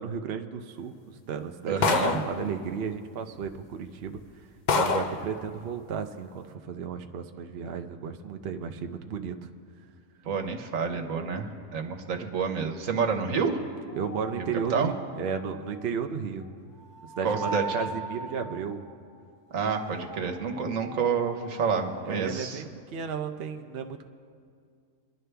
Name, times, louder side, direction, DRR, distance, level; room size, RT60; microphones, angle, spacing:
voice 1, 0.0-4.5 4.7-9.5 14.0-16.5 17.2-18.8 22.0-24.1, right 6 dB, 55° right, 6 dB, 0.8 m, -34 dB
voice 2, 1.7-2.2 10.2-13.6 14.4-14.9 17.2-17.6 19.5-22.6, right 5 dB, 80° right, 4 dB, 1.5 m, -29 dB
sound 1, 1.8-2.4 3.4-3.5 4.1-4.2 4.7-5.2, left 4 dB, 45° left, 0.6 m, -25 dB
sound 2, 13.9-16.4 16.8-22.0, right 2 dB, 25° left, 1.8 m, -40 dB
25.0 x 11.0 x 3.4 m, 2.3 s
omnidirectional pair, 1.4 m